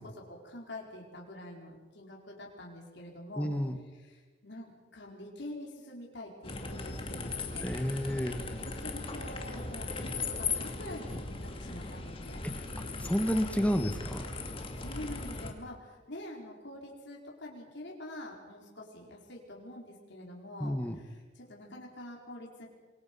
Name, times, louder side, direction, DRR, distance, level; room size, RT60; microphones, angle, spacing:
voice 1, 0.0-3.5 4.0-7.7 8.6-12.4 14.8-22.7, left 1 dB, 60° left, -2 dB, 4.7 m, -46 dB
voice 2, 3.4-3.8 7.6-8.4 12.4-12.5 13.0-14.2 20.6-21.0, equal, 5° left, 7 dB, 1.4 m, -30 dB
sound 1, 6.4-15.5, left 3 dB, 30° left, 2.4 m, -38 dB
26.5 x 22.5 x 5.5 m, 1.4 s
head